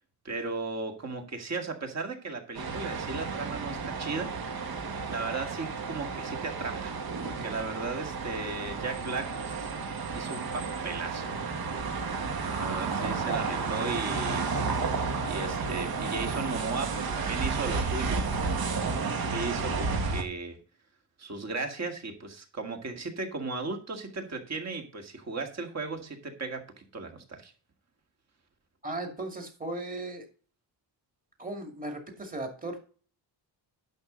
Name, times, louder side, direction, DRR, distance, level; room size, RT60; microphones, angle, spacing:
voice 1, 0.2-4.3 5.1-6.9 7.2-9.7 10.1-11.3 12.6-14.4 15.2-18.2 19.0-20.6 21.2-27.5, right 3 dB, 35° right, 4 dB, 2.0 m, -36 dB
sound 1, 2.5-20.2, right 4 dB, 50° right, 1.9 m, -32 dB
voice 2, 28.8-30.3 31.4-32.8, right 2 dB, 20° right, 3 dB, 2.3 m, -36 dB
10.5 x 6.6 x 3.9 m, 0.40 s
cardioid pair, 140°, 45 cm